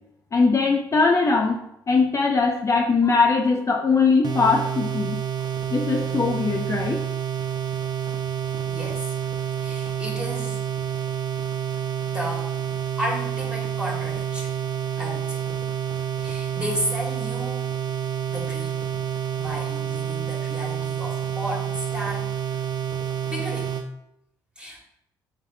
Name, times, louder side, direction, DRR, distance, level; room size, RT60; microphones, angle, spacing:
voice 1, 0.3-1.6 1.9-5.2 5.7-7.0, left 4 dB, 30° left, 1 dB, 0.5 m, -21 dB
sound 1, 4.2-23.9, right 9 dB, 45° right, 0.6 m, -28 dB
voice 2, 8.7-9.1 9.6-10.6 12.0-12.5 13.0-14.5 15.0-15.4 16.2-17.7 18.3-18.9 19.3-22.3 23.2-23.7 24.6-24.8, equal, 10° right, -2 dB, 1.5 m, -33 dB
3.6 x 3.4 x 3.3 m, 0.79 s
hypercardioid pair, 55°, 9 cm